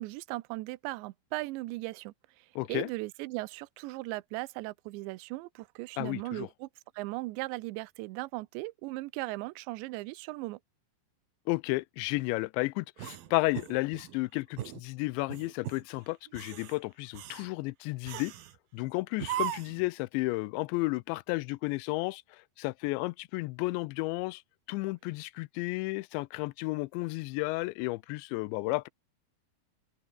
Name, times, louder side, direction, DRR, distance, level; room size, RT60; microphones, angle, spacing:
voice 1, 0.0-6.7 6.9-10.6, right 21 dB, 85° right, 3.0 m, -38 dB
voice 2, 2.6-2.9 6.0-6.5 11.5-18.3 18.7-24.4 24.7-28.9, left 23 dB, 85° left, 2.9 m, -32 dB
sound 1, 13.0-14.2 14.6-14.8 15.3-15.8 16.3-16.8 17.1-17.5 18.1-18.5 19.2-19.9, right 12 dB, 60° right, 3.0 m, -38 dB
open air
omnidirectional pair, 5.1 m